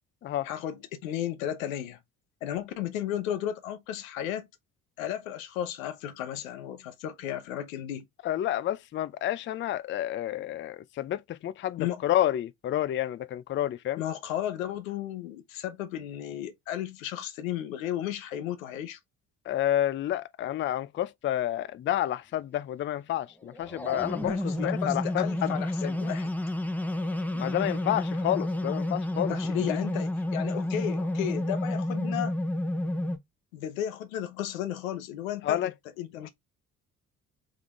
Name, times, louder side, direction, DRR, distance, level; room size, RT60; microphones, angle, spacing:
voice 1, 0.4-2.0 2.4-4.5 5.0-8.1 11.8-12.0 14.0-19.0 24.2-25.7 26.0-26.3 29.3-32.3 33.5-35.7 36.0-36.3, left 11 dB, 85° left, 0.8 m, -34 dB
voice 2, 8.2-14.0 19.5-25.6 25.8-26.0 27.3-29.4 29.7-29.8 35.4-35.7 36.2-36.3, left 12 dB, 30° left, 0.4 m, -30 dB
sound 1, 23.4-33.2, left 1 dB, 5° left, 0.9 m, -30 dB
3.7 x 3.6 x 3.0 m
hypercardioid pair, 55°, 39 cm